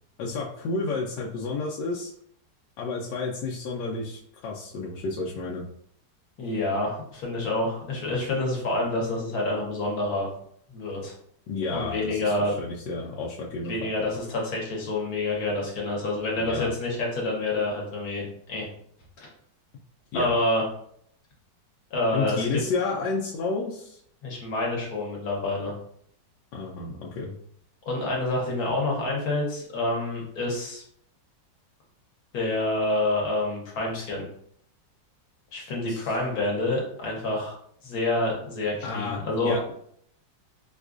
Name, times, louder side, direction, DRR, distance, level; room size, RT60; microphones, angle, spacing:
voice 1, 0.2-2.1 2.8-5.6 11.5-13.7 14.0-14.1 16.3-16.7 20.1-20.4 22.1-24.0 26.5-27.4 35.9-36.1 38.8-39.2 39.4-39.7, left 3 dB, 85° left, -3 dB, 1.2 m, -31 dB
voice 2, 6.4-10.3 10.7-11.1 11.7-12.5 13.7-18.7 19.2-19.3 20.1-20.6 21.9-22.5 24.2-25.7 27.9-30.8 32.3-34.3 35.5-37.5 37.8-39.5, left 2 dB, 60° left, -2 dB, 1.4 m, -27 dB
4.4 x 2.4 x 2.4 m, 0.67 s
omnidirectional pair, 1.9 m